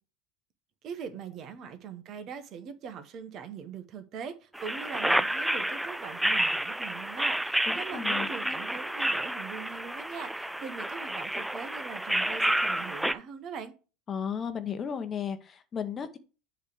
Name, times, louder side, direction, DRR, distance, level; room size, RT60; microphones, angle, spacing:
voice 1, 0.8-13.7, right 6 dB, 45° right, 10 dB, 1.1 m, -42 dB
sound 1, 4.5-13.1, right 1 dB, 5° right, 0.5 m, -30 dB
voice 2, 7.7-8.6 14.1-16.2, left 7 dB, 30° left, 9 dB, 1.0 m, -35 dB
8.0 x 3.3 x 6.2 m, 0.34 s
hypercardioid pair, 75°, 0 cm